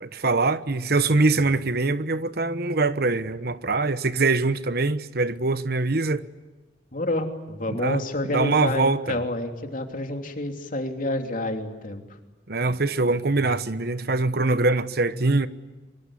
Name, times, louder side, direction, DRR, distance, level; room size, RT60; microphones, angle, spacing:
voice 1, 0.0-6.2 7.7-8.0 8.3-9.2 12.5-15.5, right 3 dB, 60° right, 1.1 m, -23 dB
voice 2, 6.9-12.0, left 1 dB, 50° left, 3.1 m, -29 dB
24.5 x 23.5 x 10.0 m
head